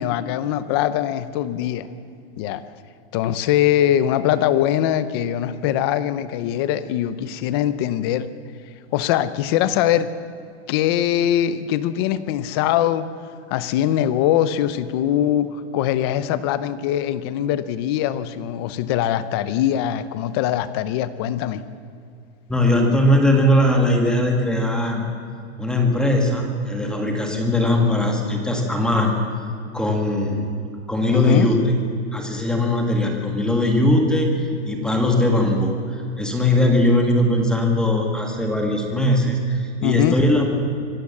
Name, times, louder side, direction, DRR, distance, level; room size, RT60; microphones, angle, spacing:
voice 1, 0.0-1.9 2.4-2.6 3.1-8.3 8.9-10.1 10.7-13.1 13.5-21.6 31.1-31.5 39.8-40.2, left 11 dB, 25° left, 15 dB, 0.6 m, -22 dB
voice 2, 22.5-25.1 25.6-29.2 29.7-30.5 30.9-31.7 32.1-40.4, left 1 dB, ahead, 2 dB, 1.8 m, -20 dB
25.5 x 16.5 x 7.3 m, 2.5 s
supercardioid pair, 175°, 33 cm